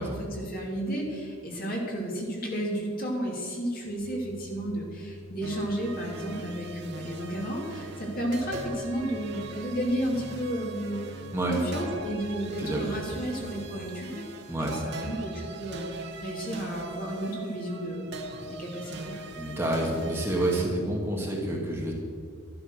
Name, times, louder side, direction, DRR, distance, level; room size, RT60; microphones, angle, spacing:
voice 1, 0.0-11.2 11.5-14.2 14.5-18.1 18.5-19.1, right 1 dB, 40° left, -2 dB, 2.9 m, -32 dB
sound 1, 3.8-13.9, right 1 dB, 5° left, 4.2 m, -47 dB
sound 2, 5.4-20.7, right 2 dB, 50° right, 1.3 m, -41 dB
voice 2, 19.4-21.9, right 1 dB, 10° right, -2 dB, 1.8 m, -28 dB
12.5 x 12.0 x 6.4 m, 2.1 s
head